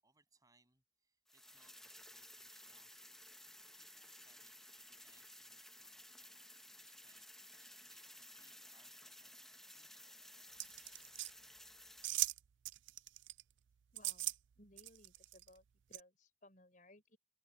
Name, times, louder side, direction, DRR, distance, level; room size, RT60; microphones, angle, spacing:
voice 1, 0.0-3.0 3.8-6.1 6.7-10.2, right 3 dB, 20° right, 7.7 m, -75 dB
sound 1, 1.3-12.1, left 1 dB, ahead, 0.9 m, -57 dB
sound 2, 10.6-11.3 12.0-12.4 12.6-13.4 14.0-14.4 14.8-15.5 15.9-16.0, right 17 dB, 85° right, 0.4 m, -39 dB
voice 2, 13.9-17.2, left 1 dB, 45° left, 4.9 m, -63 dB
head